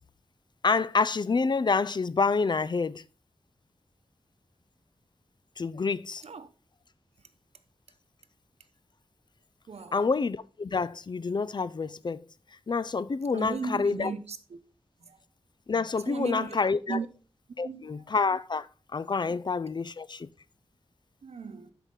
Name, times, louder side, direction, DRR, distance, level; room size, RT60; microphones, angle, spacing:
voice 1, 0.6-3.0 5.6-6.2 9.9-12.2 12.7-14.1 15.7-17.0 17.6-18.7 18.9-20.3, left 4 dB, 45° left, 0.4 m, -28 dB
voice 2, 9.7-10.0 13.3-14.6 15.0-15.2 16.1-16.6 16.9-17.1 17.6-18.0 19.3-19.4 21.2-21.7, right 4 dB, 85° right, 0.8 m, -36 dB
11.5 x 4.8 x 3.9 m
wide cardioid pair, 75°, 11 cm